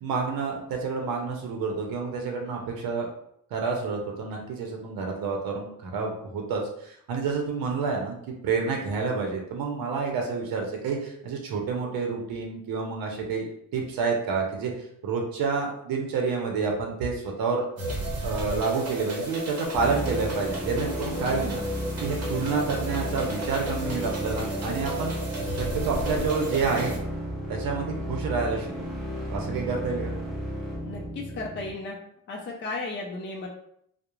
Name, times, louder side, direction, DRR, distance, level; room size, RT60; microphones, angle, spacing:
voice 1, 0.0-3.1 3.5-14.7 15.0-17.6 18.2-21.6 22.0-25.1 25.5-27.0 27.5-28.9 29.3-30.1, right 4 dB, 80° right, 1 dB, 0.6 m, -29 dB
sound 1, 17.8-27.0, right 1 dB, 45° right, 0.8 m, -34 dB
sound 2, 19.7-31.7, equal, ahead, 0.7 m, -33 dB
voice 2, 30.8-32.0 32.3-33.5, left 3 dB, 35° left, 0 dB, 0.4 m, -34 dB
2.3 x 2.0 x 2.9 m, 0.71 s
cardioid pair, 120°, 35 cm